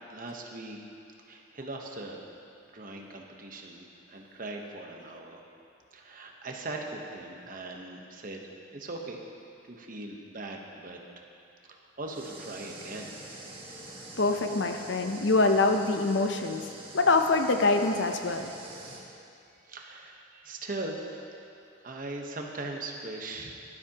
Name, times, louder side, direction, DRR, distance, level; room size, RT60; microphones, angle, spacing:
voice 1, 0.1-0.8 1.3-2.2 2.7-5.4 5.9-9.2 9.6-11.3 11.7-13.1 19.7-21.2 21.8-23.6, right 2 dB, 45° right, 1 dB, 1.1 m, -40 dB
sound 1, 12.1-19.0, right 2 dB, 30° right, 1.3 m, -45 dB
voice 2, 14.2-16.7 16.9-18.5, left 3 dB, 65° left, 5 dB, 0.7 m, -25 dB
16.0 x 12.5 x 2.9 m, 2.5 s
head